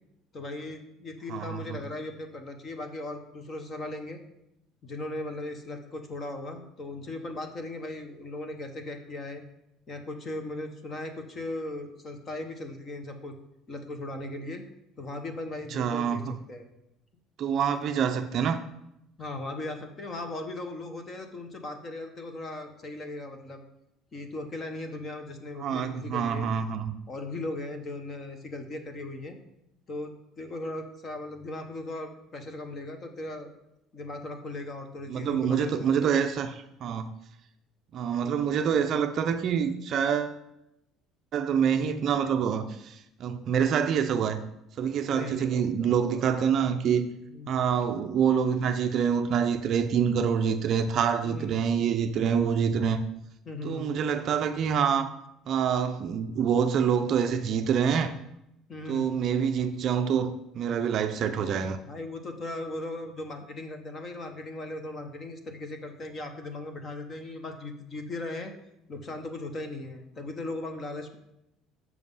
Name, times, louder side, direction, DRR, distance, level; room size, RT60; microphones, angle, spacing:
voice 1, 0.3-4.2 4.8-9.4 9.9-13.4 13.7-14.6 15.0-16.7 19.2-23.6 24.1-26.5 27.1-29.4 29.9-33.5 33.9-36.1 45.0-46.3 46.7-46.9 47.3-47.7 51.2-51.8 53.5-53.9 58.7-59.1 61.8-68.5 68.9-71.2, left 2 dB, 25° left, 0.9 m, -38 dB
voice 2, 1.3-1.8 15.7-16.4 17.4-18.6 25.6-26.9 35.1-37.1 37.9-40.4 41.3-44.4 44.8-47.1 47.5-53.0 53.6-55.1 55.5-58.1 58.9-61.8, right 7 dB, 40° right, 0.5 m, -26 dB
7.5 x 6.1 x 5.5 m
cardioid pair, 175°, 0 cm